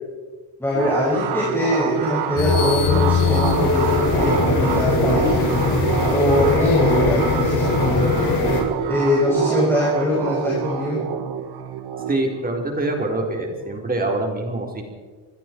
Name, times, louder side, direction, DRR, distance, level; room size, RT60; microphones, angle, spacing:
voice 1, 0.6-5.5 6.1-8.0 8.9-11.0, left 1 dB, 5° left, -7 dB, 6.4 m, -22 dB
sound 1, 0.7-14.0, right 8 dB, 75° right, 2.0 m, -26 dB
sound 2, 2.4-8.6, left 4 dB, 75° left, 7.3 m, -20 dB
voice 2, 12.1-14.8, right 2 dB, 20° right, 1 dB, 4.4 m, -25 dB
27.5 x 20.0 x 4.7 m, 1.4 s
cardioid pair, 165°, 39 cm